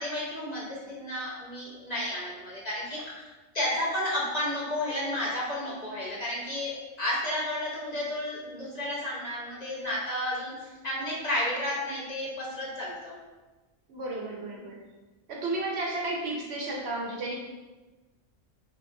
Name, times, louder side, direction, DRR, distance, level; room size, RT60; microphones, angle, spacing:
voice 1, 0.0-3.2 3.5-13.1, left 1 dB, 40° left, -7 dB, 0.9 m, -32 dB
voice 2, 13.9-14.8 15.3-17.4, right 2 dB, 65° right, -1 dB, 0.8 m, -33 dB
4.9 x 2.2 x 2.6 m, 1.2 s
omnidirectional pair, 1.2 m